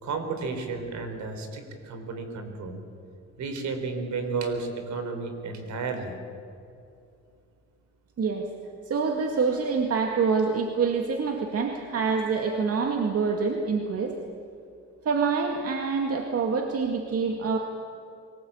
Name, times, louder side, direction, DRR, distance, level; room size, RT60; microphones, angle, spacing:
voice 1, 0.0-2.8 3.4-6.1, right 4 dB, 70° right, 6 dB, 4.1 m, -32 dB
voice 2, 8.9-14.1 15.1-17.6, right 5 dB, 50° right, 3 dB, 2.1 m, -26 dB
24.0 x 18.5 x 8.7 m, 2.6 s
cardioid pair, 90°, 30 cm